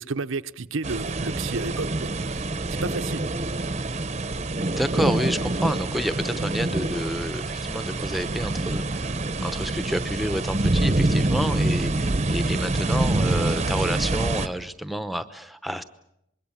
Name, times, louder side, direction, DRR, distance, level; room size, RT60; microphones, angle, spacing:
voice 1, 0.0-3.3, right 3 dB, 85° right, 12 dB, 0.8 m, -32 dB
sound 1, 0.8-14.5, right 2 dB, 35° right, 0.8 m, -26 dB
voice 2, 4.8-15.8, equal, ahead, 12 dB, 0.9 m, -29 dB
25.5 x 22.0 x 7.3 m, 0.79 s
head